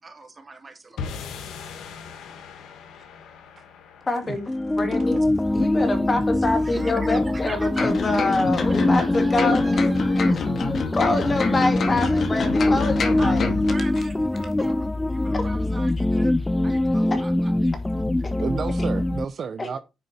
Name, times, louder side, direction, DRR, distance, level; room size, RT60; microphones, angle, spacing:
voice 1, 0.0-1.4 6.4-8.4 9.0-10.3 13.1-13.4 13.7-14.8 15.1-16.3 16.6-17.7, right 3 dB, 25° right, 2.9 m, -41 dB
sound 1, 1.0-7.3, left 6 dB, 80° left, 1.9 m, -41 dB
voice 2, 4.1-4.5 4.8-5.3 5.5-9.8 10.3-10.4 10.9-13.5 15.3-15.5 17.1-17.2 18.2-18.3 19.6-19.8, left 2 dB, 30° left, 2.3 m, -26 dB
sound 2, 4.5-19.2, left 1 dB, 10° left, 0.4 m, -23 dB
sound 3, 7.8-14.0 14.4-14.5, left 5 dB, 50° left, 2.2 m, -28 dB
voice 3, 18.4-19.8, right 6 dB, 50° right, 0.7 m, -31 dB
10.0 x 5.1 x 4.2 m
cardioid pair, 90°, 0 cm